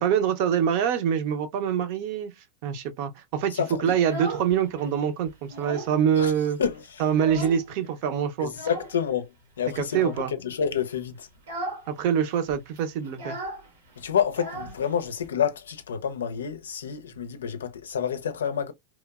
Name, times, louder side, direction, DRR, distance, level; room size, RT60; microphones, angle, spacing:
voice 1, 0.0-2.3 2.6-6.6 7.0-8.5 9.8-10.3 11.9-13.4, right 8 dB, 60° right, 0.6 m, -25 dB
voice 2, 3.5-3.9 6.2-6.3 6.6-7.0 7.3-7.4 8.4-11.3 14.0-18.7, left 8 dB, 85° left, 0.5 m, -29 dB
Child speech kid speaking, 3.8-4.9 5.2-6.0 6.3-6.4 6.7-7.8 8.5-9.0 9.8-10.3 10.8-11.0 11.3-11.9 12.1-12.2 12.5-15.3, right 1 dB, 80° right, 1.0 m, -37 dB
3.0 x 2.0 x 2.2 m
hypercardioid pair, 100°, 0 cm